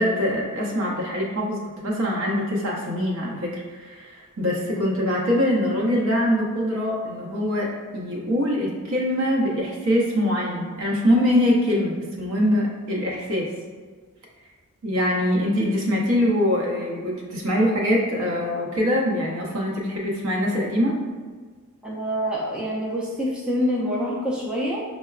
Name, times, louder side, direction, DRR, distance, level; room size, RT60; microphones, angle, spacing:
voice 1, 0.0-13.5 14.8-21.0, equal, 70° right, -2 dB, 0.7 m, -23 dB
voice 2, 21.8-24.8, equal, 5° right, -5 dB, 0.3 m, -26 dB
5.6 x 2.1 x 2.3 m, 1.5 s
head